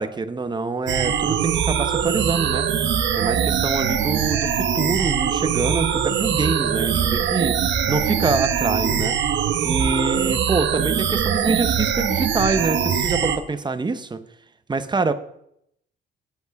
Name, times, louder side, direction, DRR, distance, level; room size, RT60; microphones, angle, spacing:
voice 1, 0.0-2.7 3.2-9.2 9.6-14.2 14.7-15.1, right 3 dB, 20° right, 11 dB, 0.8 m, -25 dB
sound 1, 0.9-13.4, right 8 dB, 70° right, 1.0 m, -22 dB
8.3 x 8.1 x 5.2 m, 0.75 s
cardioid pair, 90°, 20 cm